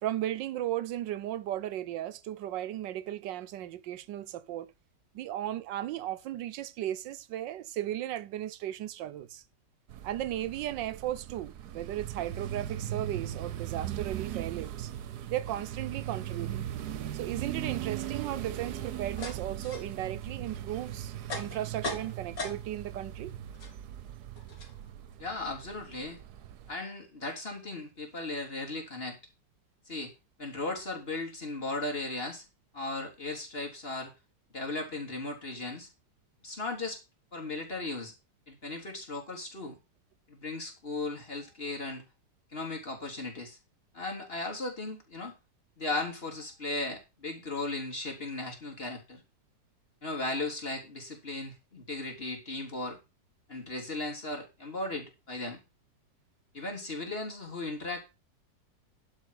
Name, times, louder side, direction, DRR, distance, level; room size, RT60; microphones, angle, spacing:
voice 1, 0.0-4.7 5.1-9.4 10.0-14.9 15.3-16.6 17.1-23.3, right 12 dB, 90° right, 1.4 m, -36 dB
sound 1, 9.9-26.7, right 11 dB, 70° right, 1.3 m, -39 dB
sound 2, 19.1-23.0 23.2-26.1, left 2 dB, 75° left, 3.8 m, -42 dB
voice 2, 25.2-26.2 26.7-29.2 29.9-30.1 30.4-32.4 32.7-34.1 34.5-35.9 36.4-37.0 37.3-38.1 38.5-39.8 40.3-42.0 42.5-43.6 43.9-45.3 45.8-49.2 50.0-53.0 53.5-55.6 56.5-58.0, left 2 dB, 30° left, 3.8 m, -36 dB
11.5 x 5.3 x 6.5 m
omnidirectional pair, 1.9 m